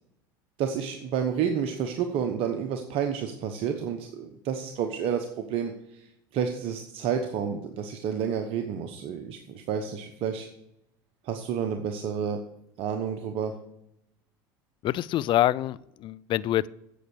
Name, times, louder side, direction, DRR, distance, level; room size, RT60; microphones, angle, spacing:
voice 1, 0.6-10.5 11.2-12.4 12.8-13.6, right 7 dB, 60° right, 5 dB, 1.0 m, -30 dB
voice 2, 14.8-16.7, left 14 dB, 50° left, 19 dB, 0.4 m, -26 dB
8.5 x 7.8 x 6.4 m, 0.80 s
hypercardioid pair, 85°, 11 cm